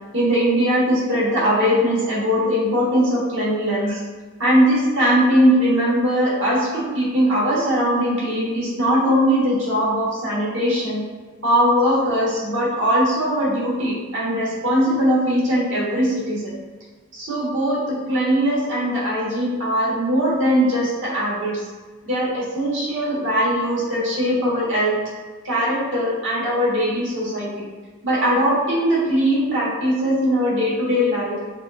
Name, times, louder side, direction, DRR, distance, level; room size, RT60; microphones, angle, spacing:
voice 1, 0.1-4.0 4.4-11.0 11.4-16.6 17.1-21.6 22.0-25.0 25.4-27.7 28.0-31.4, equal, 65° right, -6 dB, 1.3 m, -20 dB
6.3 x 2.4 x 2.4 m, 1.4 s
head